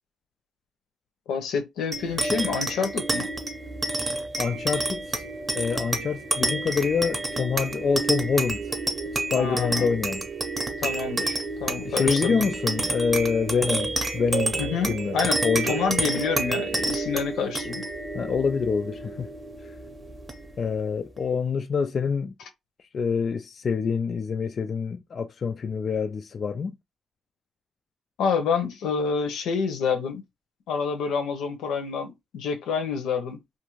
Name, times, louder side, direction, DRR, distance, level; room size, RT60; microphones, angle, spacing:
voice 1, 1.3-3.3 9.4-9.9 10.8-12.4 14.6-15.4 15.7-17.8 28.2-30.2 30.7-33.4, left 5 dB, 85° left, 0.7 m, -28 dB
sound 1, 1.9-20.8, right 2 dB, 25° right, 0.7 m, -29 dB
voice 2, 4.4-5.3 5.5-8.7 9.1-10.3 11.8-14.6 14.9-15.8 18.1-19.3 19.6-19.8 20.6-22.3 22.9-26.7, left 5 dB, 45° left, 0.3 m, -26 dB
2.5 x 2.5 x 3.0 m
cardioid pair, 90°, 0 cm